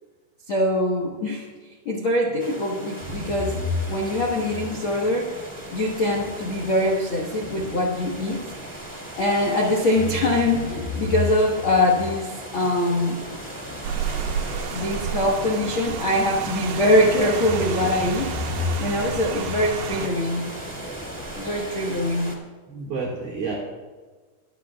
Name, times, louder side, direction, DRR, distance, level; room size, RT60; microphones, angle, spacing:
voice 1, 0.5-1.5 1.8-3.6 3.9-5.3 5.7-8.4 9.2-13.2 14.7-18.3 18.8-20.5 21.4-22.4, left 1 dB, 75° left, -1 dB, 1.1 m, -23 dB
sound 1, 2.4-22.4, right 1 dB, 10° left, 0.5 m, -37 dB
sound 2, 3.0-9.5 10.0-17.0 17.4-21.8, left 2 dB, 5° right, 3.3 m, -35 dB
Rain, 13.8-20.1, right 8 dB, 85° right, 2.0 m, -31 dB
voice 2, 22.7-23.5, right 4 dB, 55° right, -5 dB, 2.9 m, -30 dB
23.0 x 7.7 x 2.4 m, 1.4 s
omnidirectional pair, 4.5 m